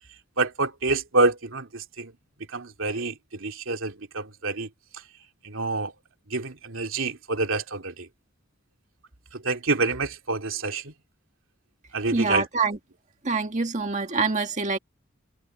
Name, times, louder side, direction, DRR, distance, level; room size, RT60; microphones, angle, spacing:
voice 1, 0.4-2.1 2.5-4.7 5.4-5.9 6.3-8.1 9.3-10.9 11.9-12.5, right 3 dB, 90° right, 2.6 m, -27 dB
voice 2, 12.1-12.8 13.2-14.8, right 4 dB, 40° right, 1.8 m, -25 dB
head